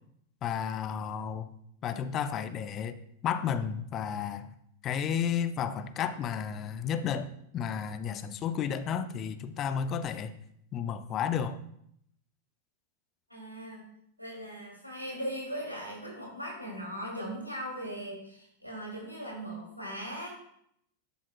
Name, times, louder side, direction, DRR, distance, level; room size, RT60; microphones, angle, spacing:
voice 1, 0.4-1.5 1.8-4.5 4.8-10.3 10.7-11.6, left 8 dB, 30° left, 12 dB, 0.5 m, -32 dB
voice 2, 13.3-13.8 14.2-20.3, equal, 90° right, -3 dB, 2.8 m, -39 dB
11.0 x 7.3 x 2.4 m, 0.73 s
figure-of-eight pair, 90°, 0 cm